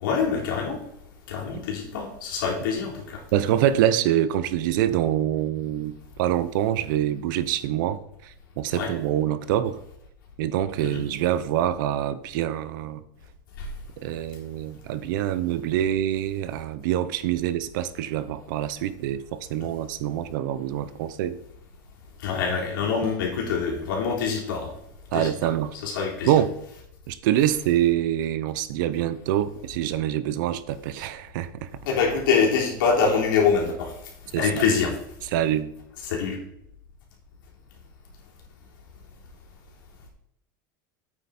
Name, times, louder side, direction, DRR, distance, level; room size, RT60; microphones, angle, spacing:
voice 1, 0.0-0.8 1.3-3.2 8.7-8.9 10.8-11.0 13.6-13.7 22.2-24.7 25.1-25.3 25.8-26.4 31.9-33.9 34.4-35.0 36.0-36.4, left 5 dB, 90° left, 3.6 m, -25 dB
voice 2, 3.3-9.8 10.4-13.0 14.0-21.4 25.1-25.7 26.2-26.6 27.1-31.7 34.3-34.6 35.3-35.7, right 11 dB, 70° right, 0.8 m, -25 dB
8.7 x 8.3 x 4.3 m
supercardioid pair, 145°, 11 cm